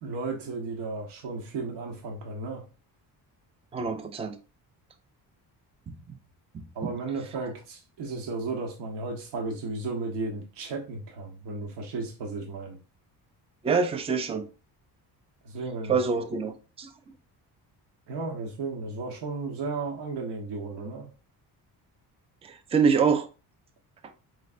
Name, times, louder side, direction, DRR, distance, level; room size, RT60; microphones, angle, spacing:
voice 1, 0.0-2.7 6.7-12.8 15.4-16.0 18.1-21.1, right 3 dB, 85° right, 1.1 m, -34 dB
voice 2, 3.7-4.4 5.9-6.2 6.8-6.9 13.6-14.5 15.9-16.9 22.4-23.3, right 5 dB, 15° right, 0.3 m, -26 dB
4.9 x 3.2 x 2.4 m
cardioid pair, 170°, 40 cm